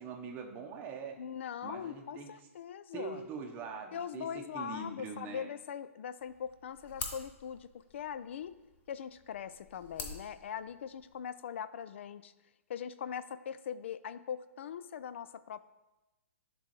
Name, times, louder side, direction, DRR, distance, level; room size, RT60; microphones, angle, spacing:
voice 1, 0.0-1.2 1.6-2.3 2.9-5.5, right 5 dB, 25° right, 2 dB, 0.7 m, -43 dB
voice 2, 1.2-3.2 3.9-8.5 8.9-12.3 12.7-15.6, left 8 dB, 55° left, 15 dB, 0.4 m, -41 dB
sound 1, 6.2-11.2, left 4 dB, 20° left, 0.8 m, -47 dB
11.0 x 3.8 x 3.1 m, 1.0 s
figure-of-eight pair, 120°, 8 cm